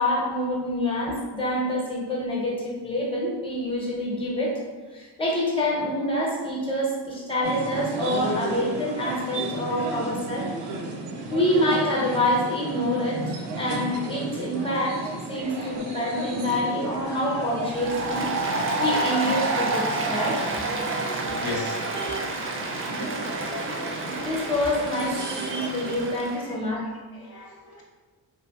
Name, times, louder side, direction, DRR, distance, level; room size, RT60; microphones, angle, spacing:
voice 1, 0.0-4.5 4.9-10.5 11.3-15.0 15.3-18.3 18.8-20.4 23.5-26.8, left 1 dB, 15° left, -4 dB, 0.8 m, -27 dB
sound 1, 7.4-26.1, right 2 dB, 75° right, 0.6 m, -34 dB
Applause, 17.7-26.4, right 2 dB, 30° right, 0.4 m, -29 dB
voice 2, 21.4-21.8 25.8-25.9 26.4-26.6 27.2-27.8, left 4 dB, 60° left, -3 dB, 0.6 m, -36 dB
2.7 x 2.7 x 2.3 m, 1.3 s
cardioid pair, 85°, 42 cm